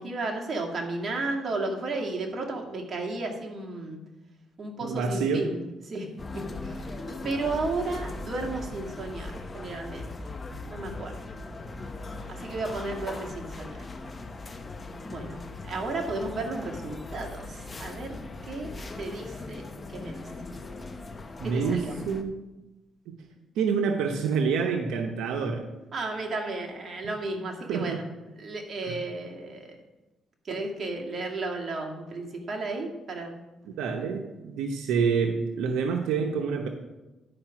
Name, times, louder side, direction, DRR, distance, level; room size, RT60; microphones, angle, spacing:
voice 1, 0.0-4.0 4.6-5.6 5.9-6.1 6.3-6.9 7.2-10.1 10.7-11.3 12.3-13.9 15.1-15.4 15.6-18.2 18.4-20.2 21.4-21.9 25.9-28.0 28.4-29.8 30.4-33.4, right 2 dB, 45° right, 0 dB, 2.1 m, -33 dB
voice 2, 4.8-5.4 21.4-22.4 23.1-23.2 23.5-25.6 27.7-28.0 28.8-29.0 33.8-36.7, right 5 dB, 90° right, 3 dB, 0.8 m, -27 dB
sound 1, 6.2-22.2, left 2 dB, 30° left, 0.8 m, -39 dB
10.5 x 5.1 x 6.0 m, 1.0 s
cardioid pair, 90°, 0 cm